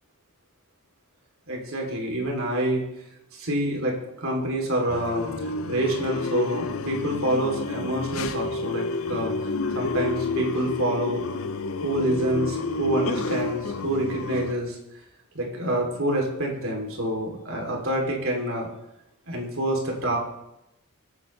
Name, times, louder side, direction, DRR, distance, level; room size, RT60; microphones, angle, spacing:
voice 1, 1.5-2.8 3.3-8.8 9.1-9.5 9.7-11.2 11.8-14.8 15.3-18.7 19.3-20.2, right 1 dB, 70° right, 0 dB, 3.1 m, -27 dB
sound 1, 4.9-14.5, left 3 dB, 75° left, 0.7 m, -30 dB
22.0 x 8.5 x 3.3 m, 0.87 s
head